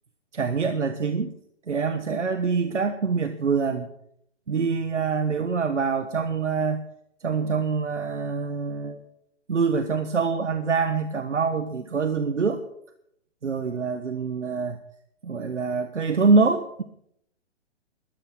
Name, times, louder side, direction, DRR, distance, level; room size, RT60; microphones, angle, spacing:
voice 1, 0.3-1.3 1.7-3.9 4.5-6.8 7.2-9.0 9.5-12.6 13.4-14.8 15.2-16.8, right 4 dB, 85° right, 9 dB, 1.2 m, -25 dB
13.5 x 11.5 x 6.1 m, 0.73 s
hypercardioid pair, 135°, 35 cm